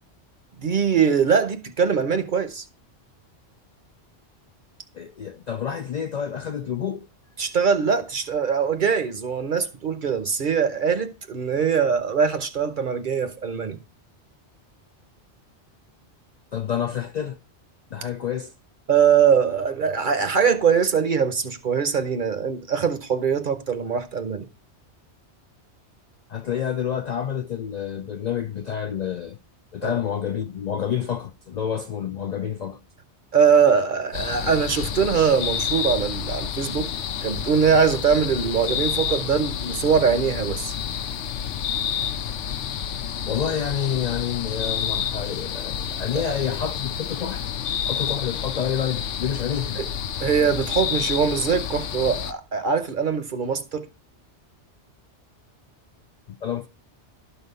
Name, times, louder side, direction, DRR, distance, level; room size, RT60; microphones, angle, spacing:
voice 1, 0.6-2.6 7.4-13.8 18.9-24.5 29.8-29.9 33.3-36.9 37.2-40.7 46.1-46.2 49.8-49.9 50.2-53.9, right 6 dB, 50° right, 0.9 m, -22 dB
voice 2, 4.9-7.1 16.5-17.4 17.9-18.5 26.3-29.4 29.7-32.8 43.3-47.4 47.8-49.9 56.3-56.7, left 8 dB, 55° left, 0.4 m, -28 dB
sound 1, 34.1-52.3, left 8 dB, 85° left, 0.9 m, -29 dB
12.0 x 4.1 x 5.3 m
omnidirectional pair, 1.2 m